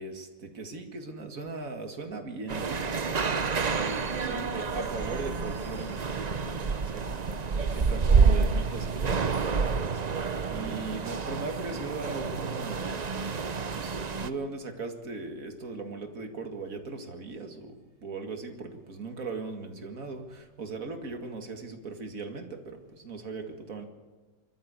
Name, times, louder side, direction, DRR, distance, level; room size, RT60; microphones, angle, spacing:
voice 1, 0.0-13.2 13.5-23.9, right 3 dB, 50° right, 4 dB, 2.4 m, -39 dB
sound 1, 2.5-14.3, right 5 dB, 65° right, 0.4 m, -28 dB
25.5 x 13.5 x 8.2 m, 1.3 s
omnidirectional pair, 1.9 m